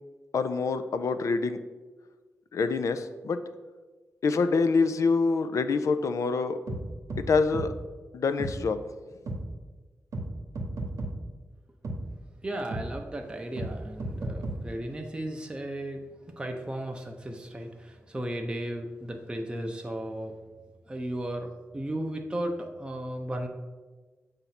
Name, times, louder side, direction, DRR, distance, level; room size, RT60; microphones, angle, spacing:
voice 1, 0.3-1.6 2.5-3.4 4.2-6.6 7.3-7.7 8.1-8.8, left 4 dB, 70° left, 10 dB, 0.4 m, -26 dB
sound 1, 6.7-6.8 7.1-7.2 7.5-7.7 8.4-8.5 9.3-9.4 10.1-10.3 10.5-11.1 11.8-12.0 12.7-12.8 13.6-13.7 14.0-14.6, right 1 dB, 80° right, 0.9 m, -33 dB
voice 2, 12.4-16.0 16.4-20.4 20.9-23.5, right 1 dB, 15° right, 3 dB, 0.5 m, -35 dB
7.1 x 2.7 x 5.8 m, 1.3 s
wide cardioid pair, 125°, 6 cm